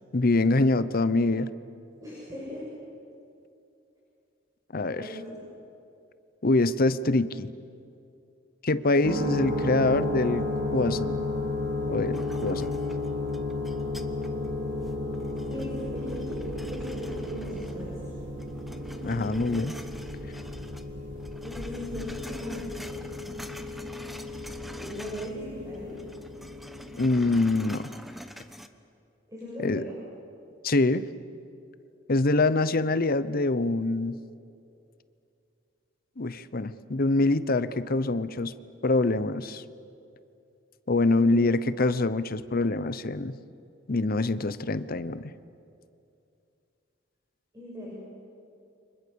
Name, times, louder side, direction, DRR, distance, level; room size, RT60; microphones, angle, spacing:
voice 1, 0.1-1.5 4.7-5.0 6.4-7.5 8.6-10.5 10.7-11.3 11.9-12.7 19.0-19.7 27.0-27.9 29.6-29.8 30.6-31.0 32.1-34.2 36.2-38.5 38.8-39.6 40.9-43.4 43.9-45.3, left 2 dB, 50° left, 15 dB, 0.8 m, -25 dB
voice 2, 2.0-2.7 5.0-5.4 8.9-9.7 15.5-16.4 16.7-18.0 21.4-23.0 24.6-26.0 29.3-30.0 41.1-41.5 47.5-47.9, left 1 dB, 20° right, -6 dB, 6.8 m, -38 dB
sound 1, 9.0-27.4, left 2 dB, 65° right, 4.0 m, -33 dB
sound 2, 12.1-14.5 14.9-18.1 18.4-20.9 21.2-25.4 25.7-28.7, equal, ahead, 1.0 m, -45 dB
29.5 x 25.5 x 7.0 m, 2.6 s
head